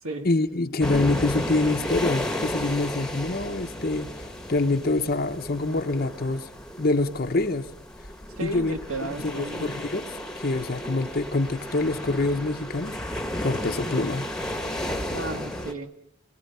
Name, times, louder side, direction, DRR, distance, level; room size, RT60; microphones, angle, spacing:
voice 1, 0.2-6.5 6.8-7.7 8.4-8.8 9.2-14.3, left 2 dB, 45° left, 5 dB, 0.9 m, -26 dB
sound 1, 0.8-15.7, left 1 dB, 5° left, 1.3 m, -33 dB
voice 2, 8.4-9.8 15.1-15.9, right 2 dB, 80° right, 6 dB, 1.8 m, -34 dB
29.0 x 22.0 x 5.6 m, 0.68 s
head